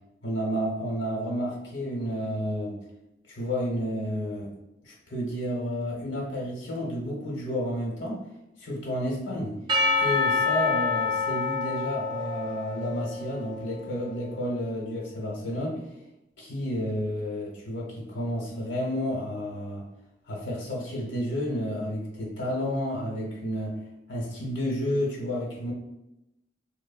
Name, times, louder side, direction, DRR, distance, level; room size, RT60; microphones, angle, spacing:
voice 1, 0.2-2.8 3.3-4.5 4.8-8.2 8.6-9.6 10.0-15.8 16.4-19.8 20.3-23.8 24.1-25.7, equal, 75° left, -2 dB, 0.9 m, -31 dB
Percussion / Church bell, 9.7-14.0, left 4 dB, 25° right, 0.5 m, -27 dB
3.1 x 2.0 x 2.3 m, 0.88 s
head